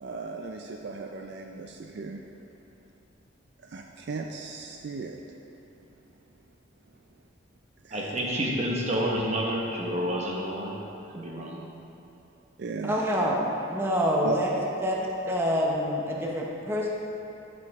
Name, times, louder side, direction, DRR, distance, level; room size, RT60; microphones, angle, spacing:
voice 1, 0.0-2.2 3.6-5.2 7.8-8.1 12.6-13.0 14.2-14.4, right 4 dB, 60° right, 2 dB, 0.4 m, -36 dB
voice 2, 7.9-10.7 11.1-11.7, equal, 35° right, -2 dB, 1.0 m, -29 dB
voice 3, 12.8-13.4 13.7-14.5 14.8-15.0 15.2-16.9, equal, 10° right, -3 dB, 0.7 m, -26 dB
12.0 x 5.0 x 3.6 m, 2.8 s
head